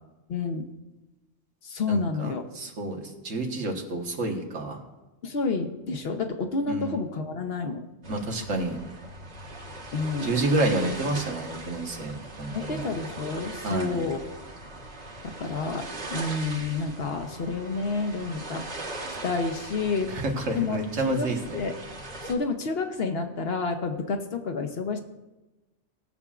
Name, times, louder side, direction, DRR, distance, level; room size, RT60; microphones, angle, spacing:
voice 1, 0.3-0.7 1.6-2.4 5.2-7.8 9.9-10.3 12.5-14.2 15.4-18.6 19.2-20.1 20.6-21.7 22.2-25.0, left 4 dB, 55° left, 5 dB, 1.0 m, -29 dB
voice 2, 1.9-4.8 6.7-7.0 8.1-8.8 10.2-12.9 13.6-14.0 20.1-21.6, right 2 dB, 85° right, 2 dB, 1.6 m, -29 dB
sound 1, 8.0-22.3, right 2 dB, 60° right, 1.6 m, -40 dB
18.5 x 7.1 x 2.4 m, 1.1 s
omnidirectional pair, 1.3 m